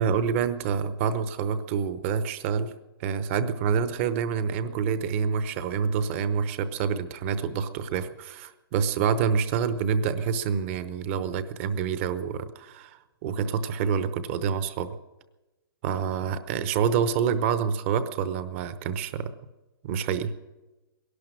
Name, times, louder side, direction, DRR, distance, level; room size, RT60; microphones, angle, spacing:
voice 1, 0.0-2.7 3.0-14.9 15.8-19.3 19.8-20.3, right 6 dB, 30° right, 12 dB, 0.8 m, -27 dB
18.5 x 11.5 x 6.2 m, 1.1 s
hypercardioid pair, 160°, 12 cm